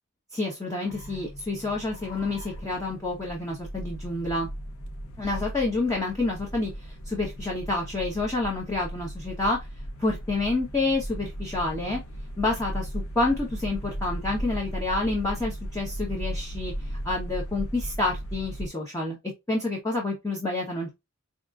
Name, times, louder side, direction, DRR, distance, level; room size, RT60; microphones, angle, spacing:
voice 1, 0.3-4.5 5.2-6.7 7.1-9.6 10.0-12.0 12.4-19.2 19.5-20.9, left 2 dB, 15° left, -2 dB, 0.9 m, -28 dB
sound 1, 0.9-18.7, equal, 75° left, 0.7 m, -36 dB
5.1 x 2.5 x 2.4 m, 0.21 s
head